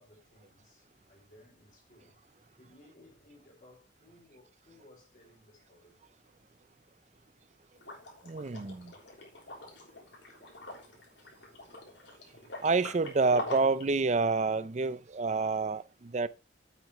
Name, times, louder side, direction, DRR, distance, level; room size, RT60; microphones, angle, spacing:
voice 1, 0.0-6.1, left 1 dB, 45° left, 4.6 m, -60 dB
Liquid, 7.8-13.9, left 2 dB, 70° left, 3.5 m, -44 dB
voice 2, 8.3-8.9 12.6-16.3, right 3 dB, 35° right, 0.5 m, -28 dB
9.6 x 8.3 x 3.1 m
head